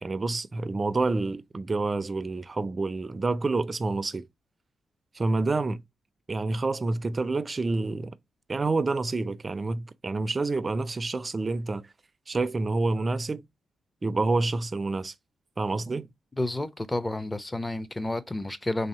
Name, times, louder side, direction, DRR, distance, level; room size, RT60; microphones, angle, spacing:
voice 1, 0.0-4.3 5.1-5.8 6.3-8.2 8.5-11.9 12.3-13.4 14.0-15.1 15.6-16.1, right 3 dB, 30° right, 0.4 m, -28 dB
voice 2, 16.4-18.9, left 2 dB, 15° left, 0.5 m, -30 dB
3.2 x 2.7 x 4.1 m
cardioid pair, 85°, 0 cm